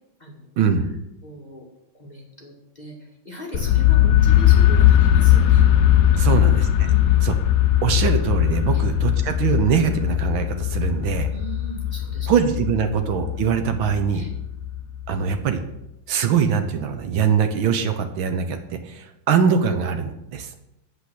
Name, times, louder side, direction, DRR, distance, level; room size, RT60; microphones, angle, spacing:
voice 1, 0.6-0.9 6.2-6.7 7.2-7.3 7.8-11.3 12.3-14.2 15.1-15.6 16.1-20.5, right 7 dB, 70° right, 7 dB, 1.7 m, -22 dB
voice 2, 1.2-1.7 1.9-6.4 6.8-7.2 8.7-8.9 11.3-12.3 12.8-12.9 14.1-14.3, right 1 dB, 20° left, -2 dB, 1.9 m, -38 dB
sound 1, 3.5-15.4, left 12 dB, 85° left, 0.7 m, -19 dB
8.6 x 8.0 x 6.2 m, 0.86 s
omnidirectional pair, 2.3 m